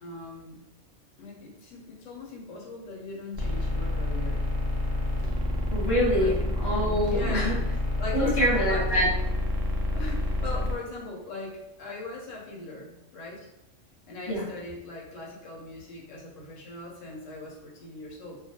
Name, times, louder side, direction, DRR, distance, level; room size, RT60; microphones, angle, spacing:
voice 1, 0.0-0.6 1.2-4.4 6.2-6.4 7.1-7.7 8.0-9.1 9.9-13.5 14.1-18.4, left 2 dB, 85° left, -2 dB, 1.0 m, -39 dB
sound 1, 3.3-10.7, left 1 dB, 60° right, 0.7 m, -28 dB
voice 2, 5.7-7.5 8.1-9.1 14.3-14.4, equal, 20° left, -6 dB, 0.8 m, -25 dB
2.3 x 2.0 x 2.7 m, 0.87 s
omnidirectional pair, 1.3 m